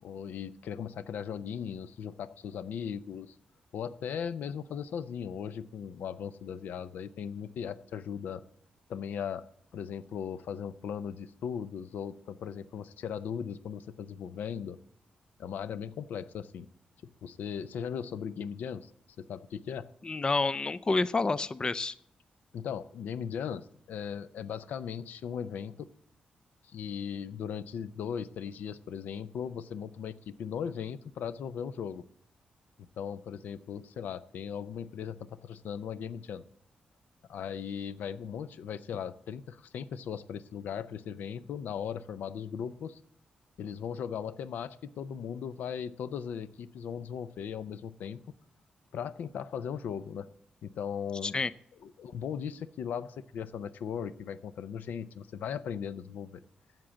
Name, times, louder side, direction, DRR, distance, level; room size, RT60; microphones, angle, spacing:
voice 1, 0.0-3.3 3.7-8.4 8.9-9.5 9.7-14.8 15.4-16.7 17.2-18.9 19.3-19.9 22.5-25.9 26.6-32.0 32.8-35.2 35.4-36.4 37.3-43.0 43.6-48.2 48.9-50.3 50.6-51.4 51.8-56.4, left 7 dB, 80° left, 15 dB, 0.5 m, -38 dB
voice 2, 20.0-21.9 51.2-51.5, left 3 dB, 30° left, 16 dB, 0.4 m, -29 dB
7.6 x 7.4 x 8.2 m, 0.69 s
cardioid pair, 70°, 3 cm